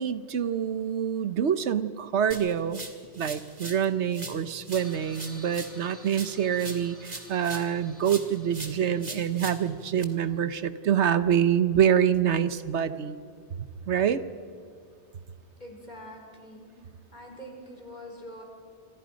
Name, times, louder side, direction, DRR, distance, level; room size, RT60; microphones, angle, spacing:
voice 1, 0.0-2.8 3.2-13.2 13.9-14.2, right 8 dB, 80° right, 12 dB, 1.2 m, -26 dB
sound 1, 2.3-3.9 4.1-7.8 8.0-10.0, right 2 dB, 40° right, 2.1 m, -41 dB
sound 2, 4.7-10.2, equal, 60° left, 3.2 m, -52 dB
voice 2, 15.6-18.4, equal, 40° left, 1 dB, 4.7 m, -45 dB
28.5 x 25.5 x 5.2 m, 2.1 s
omnidirectional pair, 1.1 m